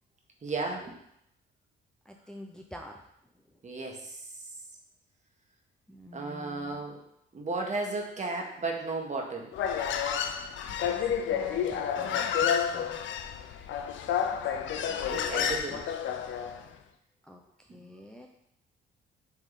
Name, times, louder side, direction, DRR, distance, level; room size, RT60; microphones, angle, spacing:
voice 1, 0.4-0.9 3.6-4.2 6.1-7.0 7.3-9.5 15.1-15.9 17.7-17.8, right 3 dB, 35° right, 1 dB, 1.6 m, -34 dB
voice 2, 2.1-3.0 5.9-6.8 10.7-13.0 14.0-14.4 14.7-15.8 17.2-18.3, left 1 dB, 5° left, 1 dB, 0.6 m, -48 dB
Human voice, 9.5-16.6, left 8 dB, 75° left, 0.6 m, -30 dB
7.8 x 3.7 x 4.1 m, 0.76 s
cardioid pair, 90°, 20 cm